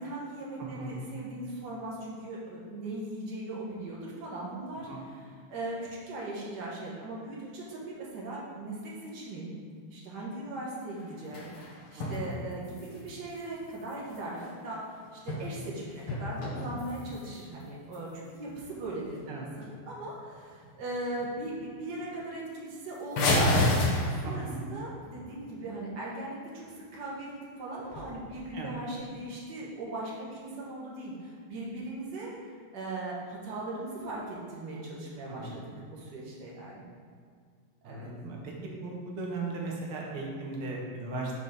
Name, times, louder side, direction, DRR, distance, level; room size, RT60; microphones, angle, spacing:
voice 1, 0.0-9.5 9.9-26.6 26.9-27.3 27.6-36.9 37.8-38.1, right 2 dB, 55° right, -5 dB, 1.7 m, -39 dB
sound 1, 10.9-12.2 12.5-14.5 15.0-15.7 16.0-17.4 17.9-18.0 18.5-18.7 19.1-19.2 19.5-20.0 20.4-20.8 21.2-21.3 21.6-21.7 22.0-22.1 23.1-24.6 27.8-28.5, left 1 dB, 80° left, 1.8 m, -30 dB
voice 2, 12.0-12.4 19.3-19.5 24.2-24.6 28.5-28.7 35.3-35.7 37.8-38.5 38.8-41.3, right 3 dB, 75° right, -2 dB, 1.9 m, -37 dB
5.8 x 4.1 x 4.9 m, 2.1 s
omnidirectional pair, 2.4 m